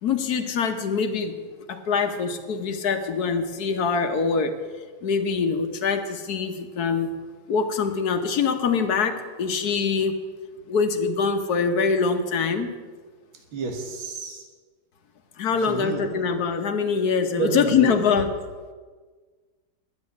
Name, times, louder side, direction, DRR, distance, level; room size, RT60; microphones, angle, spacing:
voice 1, 0.0-1.3 1.7-4.6 5.0-7.1 7.5-10.2 10.7-12.8 15.4-18.3, left 5 dB, 55° left, 7 dB, 1.4 m, -24 dB
voice 2, 13.5-14.4 15.7-16.0 17.4-17.9, right 5 dB, 75° right, 2 dB, 2.3 m, -30 dB
10.5 x 8.0 x 9.5 m, 1.4 s
omnidirectional pair, 2.3 m